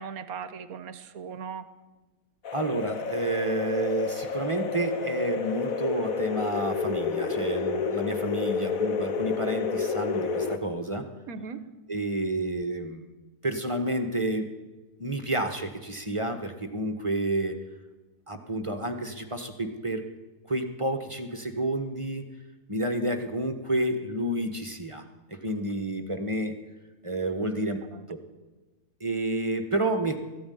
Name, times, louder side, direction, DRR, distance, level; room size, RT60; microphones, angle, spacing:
voice 1, 0.0-1.7 11.3-11.6 27.4-27.5 27.9-28.1, right 6 dB, 70° right, 12 dB, 1.5 m, -38 dB
sound 1, 2.4-10.6, left 5 dB, 70° left, 1.7 m, -30 dB
voice 2, 2.5-11.0 11.9-13.0 13.4-14.5 15.0-17.5 18.3-20.0 20.5-22.2 22.7-25.0 25.3-26.5 27.0-27.8 28.1-28.2 29.0-30.2, right 1 dB, 20° right, 6 dB, 1.5 m, -30 dB
19.0 x 14.5 x 9.5 m, 1.2 s
omnidirectional pair, 1.6 m